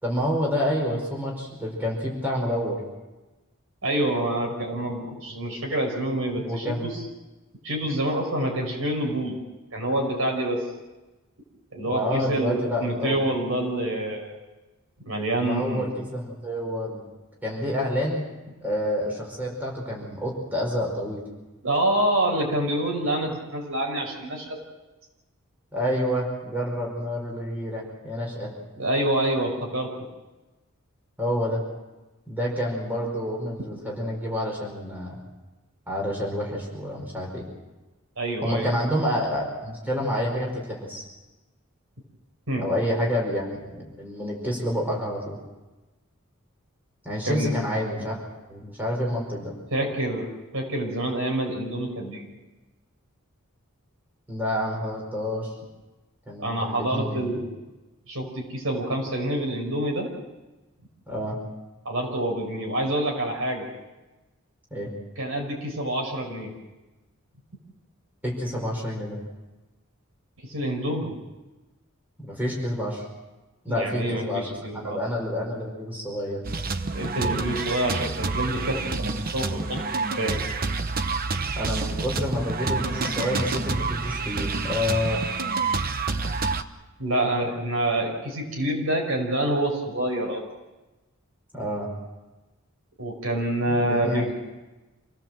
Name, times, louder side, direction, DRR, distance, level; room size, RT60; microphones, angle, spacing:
voice 1, 0.0-2.8 6.5-6.9 11.8-13.2 15.4-17.0 17.4-18.2 18.6-21.2 25.7-28.5 31.2-31.6 32.3-35.2 35.9-37.4 38.4-41.0 42.6-45.4 47.0-48.2 48.5-49.5 54.3-55.5 56.3-57.3 61.1-61.4 64.7-64.9 68.2-69.2 72.2-73.0 73.6-74.5 74.8-76.4 81.5-85.2 91.5-91.9 93.8-94.3, equal, 10° right, -2 dB, 5.0 m, -28 dB
voice 2, 3.8-7.0 7.6-9.4 9.7-10.6 11.7-14.4 15.1-15.9 21.6-24.6 28.8-29.9 38.2-38.7 42.5-42.6 47.3-47.5 49.7-50.3 50.5-52.3 56.4-57.5 58.1-60.1 61.8-63.7 65.2-66.5 70.5-71.2 73.7-75.0 76.9-79.9 80.2-80.4 87.0-90.4 93.0-94.3, right 1 dB, 70° right, 1 dB, 5.8 m, -27 dB
sound 1, 76.4-86.6, right 4 dB, 45° right, 0.9 m, -28 dB
27.5 x 17.5 x 7.7 m, 1.1 s
head